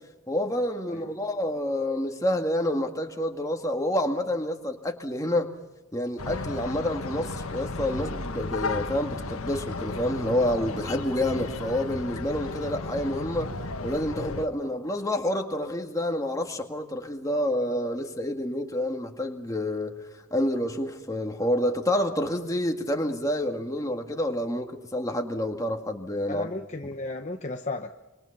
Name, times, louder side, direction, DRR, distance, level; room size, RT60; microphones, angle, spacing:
voice 1, 0.3-5.5 5.9-13.5 13.8-20.0 20.3-26.5, left 1 dB, 15° left, 2.0 m, -28 dB
sound 1, 6.2-14.4, left 3 dB, 85° left, 1.7 m, -34 dB
voice 2, 26.3-28.0, left 2 dB, 35° left, 0.9 m, -34 dB
27.0 x 25.0 x 5.9 m
head